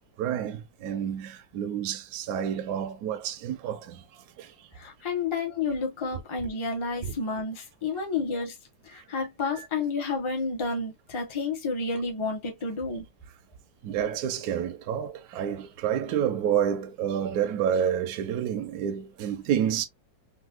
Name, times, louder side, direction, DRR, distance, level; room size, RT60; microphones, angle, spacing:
voice 1, 0.2-4.1 4.4-4.5 6.1-6.2 7.0-7.1 9.5-9.7 13.8-19.8, right 9 dB, 65° right, 1.1 m, -29 dB
voice 2, 4.7-8.5 8.9-13.0, left 4 dB, 20° left, 0.8 m, -30 dB
3.8 x 2.6 x 2.4 m
omnidirectional pair, 2.0 m